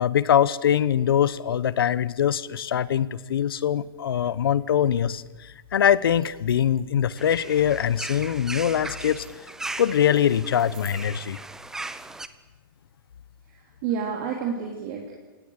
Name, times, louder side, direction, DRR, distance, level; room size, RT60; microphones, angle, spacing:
voice 1, 0.0-9.3 9.8-11.4, left 9 dB, 85° left, 18 dB, 0.9 m, -23 dB
sound 1, 5.7-10.9, right 6 dB, 90° right, 6.2 m, -54 dB
sound 2, 7.2-12.3, right 2 dB, 5° right, 0.6 m, -38 dB
voice 2, 13.5-15.1, right 7 dB, 40° right, 0 dB, 3.2 m, -30 dB
29.5 x 17.5 x 6.5 m, 1.2 s
hypercardioid pair, 155°, 12 cm